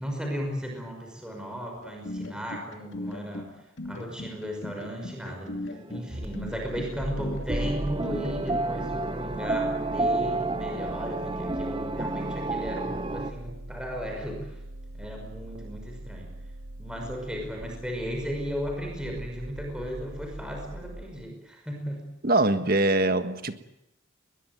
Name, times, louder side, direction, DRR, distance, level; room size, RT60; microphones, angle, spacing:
voice 1, 0.0-3.5 3.8-5.6 5.9-14.6 14.9-16.3 16.8-22.1, equal, 5° right, 5.6 m, -35 dB
sound 1, 1.8-8.7, left 1 dB, 60° left, 2.6 m, -38 dB
sound 2, 5.7-6.0 7.0-13.3, right 2 dB, 25° right, 1.2 m, -30 dB
sound 3, 6.1-21.1, right 1 dB, 80° right, 2.4 m, -42 dB
voice 2, 22.2-23.6, right 2 dB, 45° right, 1.6 m, -23 dB
22.0 x 21.5 x 9.5 m
head